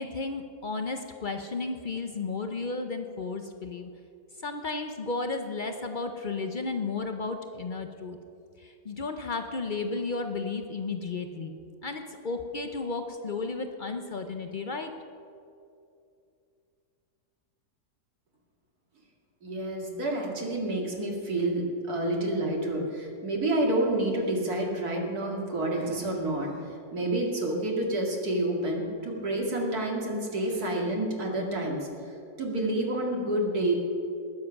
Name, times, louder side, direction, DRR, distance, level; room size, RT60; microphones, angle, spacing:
voice 1, 0.0-3.9 4.4-8.2 8.6-11.5 11.8-14.9, left 3 dB, 60° left, 6 dB, 0.5 m, -33 dB
voice 2, 19.4-26.5 26.9-33.7, right 1 dB, 65° right, -1 dB, 2.6 m, -29 dB
19.5 x 7.5 x 5.9 m, 2.5 s
omnidirectional pair, 1.8 m